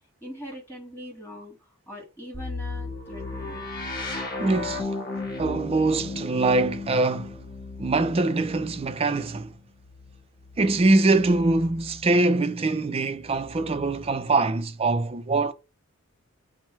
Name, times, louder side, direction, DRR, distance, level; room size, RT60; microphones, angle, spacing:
voice 1, 0.2-3.6, left 1 dB, 10° left, 1.5 m, -41 dB
sound 1, 2.3-12.2 13.2-14.2, left 2 dB, 40° left, 1.2 m, -36 dB
voice 2, 4.4-4.9 5.4-7.4 7.8-9.5 10.6-15.5, right 2 dB, 25° right, 0.4 m, -23 dB
6.0 x 2.1 x 4.3 m
head